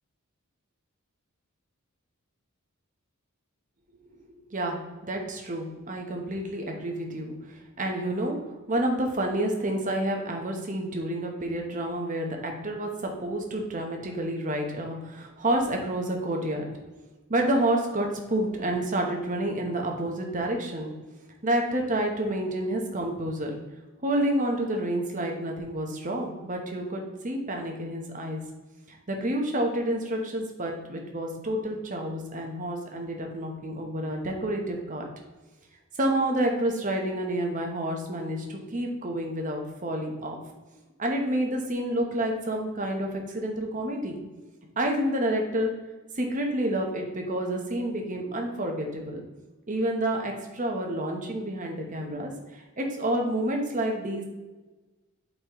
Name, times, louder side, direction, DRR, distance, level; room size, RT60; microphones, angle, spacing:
voice 1, 5.0-8.4 8.7-16.6 17.3-20.9 21.4-23.6 24.0-28.4 28.9-35.1 36.0-40.4 41.0-44.2 44.8-45.7 46.2-49.2 49.7-54.3, right 1 dB, 35° right, 2 dB, 1.0 m, -29 dB
8.3 x 4.2 x 3.1 m, 1.2 s
head